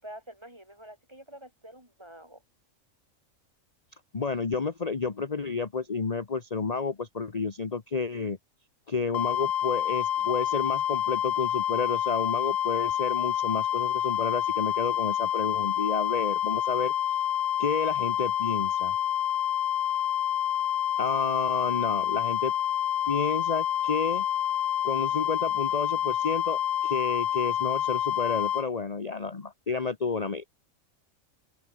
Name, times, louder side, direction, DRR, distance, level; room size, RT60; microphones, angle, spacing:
voice 1, 0.0-2.4, right 1 dB, 20° right, 5.5 m, -47 dB
voice 2, 4.1-8.4 8.9-16.9 17.6-18.9 21.0-22.5 23.1-24.2 24.8-30.4, left 4 dB, 30° left, 1.2 m, -30 dB
sound 1, 9.1-28.7, left 10 dB, 60° left, 0.8 m, -28 dB
omnidirectional pair, 1.4 m